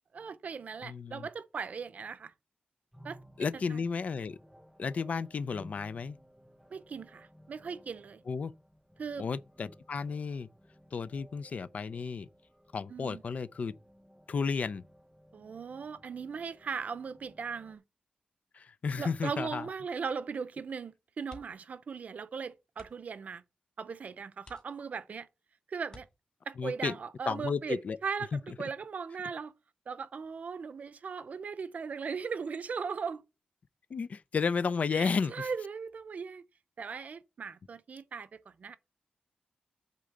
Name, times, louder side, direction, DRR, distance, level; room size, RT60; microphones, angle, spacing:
voice 1, 0.1-2.3 3.0-3.8 6.7-8.2 9.0-9.3 12.9-13.2 15.3-17.8 19.0-23.4 23.8-25.3 25.7-26.1 26.5-29.5 29.9-33.2 34.9-36.4 36.8-38.8, right 5 dB, 60° right, 0.7 m, -38 dB
voice 2, 0.8-1.3 3.4-4.4 4.8-6.2 8.3-8.5 9.2-10.5 10.9-12.3 12.7-13.7 14.3-14.8 18.5-19.6 26.6-26.9 27.3-28.0 28.3-28.4 33.9-35.5, left 5 dB, 55° left, 0.5 m, -33 dB
sound 1, 2.9-17.8, equal, 5° right, 0.5 m, -58 dB
sound 2, 21.2-21.8 22.1-22.2 22.7-23.2 23.8-23.9 24.4-25.2 25.8-26.6 28.2-28.5 28.9-29.0, left 1 dB, 30° left, 2.3 m, -55 dB
8.2 x 3.8 x 6.7 m
wide cardioid pair, 145°, 3 cm